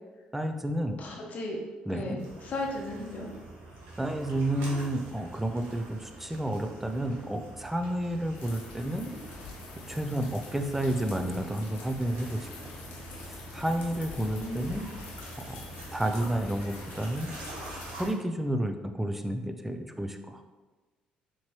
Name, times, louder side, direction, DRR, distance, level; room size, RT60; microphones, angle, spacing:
voice 1, 0.3-1.0 1.9-2.2 4.0-9.4 9.9-12.5 13.2-14.9 15.4-17.4 17.7-20.4, right 1 dB, 5° right, 6 dB, 0.4 m, -31 dB
voice 2, 1.0-1.6 1.9-3.3 14.2-14.7, left 2 dB, 55° left, 0 dB, 0.7 m, -36 dB
sound 1, 2.2-18.0, right 2 dB, 90° right, 0.9 m, -46 dB
sound 2, 8.3-18.1, left 3 dB, 85° left, 0.8 m, -45 dB
4.3 x 2.9 x 3.0 m, 1.2 s
supercardioid pair, 75°, 3 cm